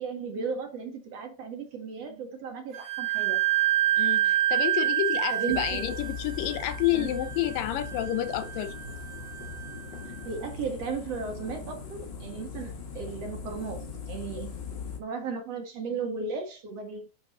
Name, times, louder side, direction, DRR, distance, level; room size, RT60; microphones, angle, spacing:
voice 1, 0.0-3.4 5.3-5.9 6.9-7.2 10.3-14.6 15.0-17.1, right 5 dB, 50° right, 2.5 m, -35 dB
Wind instrument woodwind instrument, 2.7-10.2, right 13 dB, 85° right, 3.1 m, -28 dB
voice 2, 4.0-8.7, left 13 dB, 75° left, 2.5 m, -29 dB
sound 1, 5.5-15.0, left 5 dB, 40° left, 1.8 m, -40 dB
11.0 x 4.6 x 4.3 m
omnidirectional pair, 4.0 m